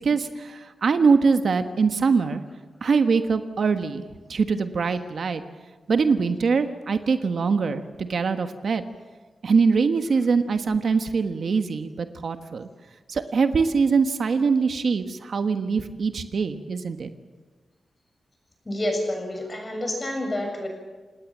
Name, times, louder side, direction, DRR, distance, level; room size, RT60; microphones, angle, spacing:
voice 1, 0.0-2.4 2.8-4.0 4.3-5.4 5.9-8.8 9.4-12.7 13.1-17.1, right 5 dB, 65° right, 8 dB, 1.3 m, -23 dB
voice 2, 18.7-20.7, left 1 dB, 25° left, 3 dB, 7.0 m, -28 dB
28.5 x 18.5 x 7.4 m, 1.3 s
wide cardioid pair, 115°, 0 cm